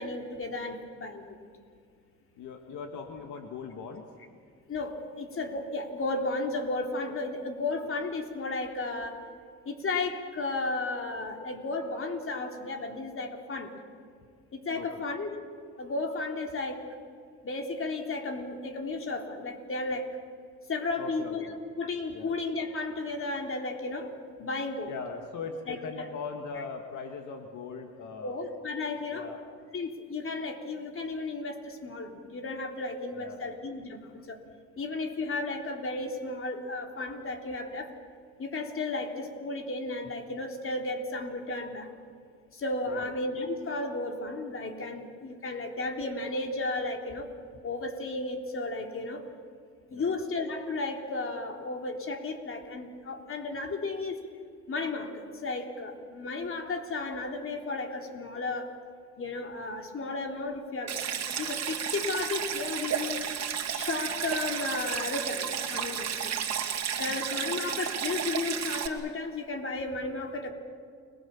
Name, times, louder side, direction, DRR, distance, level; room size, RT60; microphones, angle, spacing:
voice 1, 0.0-1.4 4.7-9.2 9.7-13.8 14.5-15.4 15.8-16.9 17.4-20.1 20.7-24.1 24.4-24.9 25.7-26.1 26.6-26.7 28.2-29.2 29.7-34.4 34.8-37.9 38.4-41.9 42.5-47.3 47.6-49.2 49.9-54.2 54.7-58.7 59.2-63.3 63.7-66.4 67.0-70.5, left 3 dB, 45° left, 4 dB, 3.6 m, -34 dB
voice 2, 2.4-4.0 14.7-15.1 21.0-21.6 22.1-22.4 24.9-28.3 29.1-29.4 33.1-33.7 42.8-43.1 49.9-50.1 67.1-67.2, left 5 dB, 80° left, 5 dB, 2.0 m, -40 dB
Stream, 60.9-68.9, right 8 dB, 55° right, 2.5 m, -32 dB
30.0 x 21.0 x 7.2 m, 2.2 s
cardioid pair, 90°, 30 cm